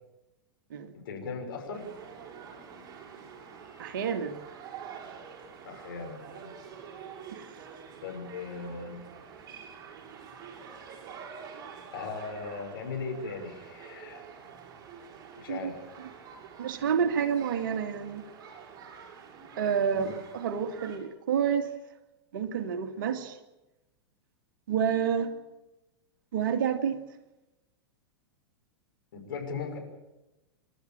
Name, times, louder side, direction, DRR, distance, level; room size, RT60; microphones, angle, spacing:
voice 1, 1.0-1.8 5.6-6.6 8.0-9.0 11.9-14.3 15.4-15.8 19.9-20.2 29.1-29.8, left 4 dB, 55° left, 2 dB, 5.9 m, -38 dB
sound 1, 1.7-21.0, right 7 dB, 25° right, 6.7 m, -47 dB
voice 2, 3.8-4.4 7.3-7.6 15.5-15.7 16.6-18.2 19.6-21.7 22.3-23.4 24.7-25.3 26.3-27.0, right 7 dB, 50° right, 8 dB, 2.0 m, -29 dB
29.0 x 13.0 x 8.9 m, 1.0 s
figure-of-eight pair, 100°, 13 cm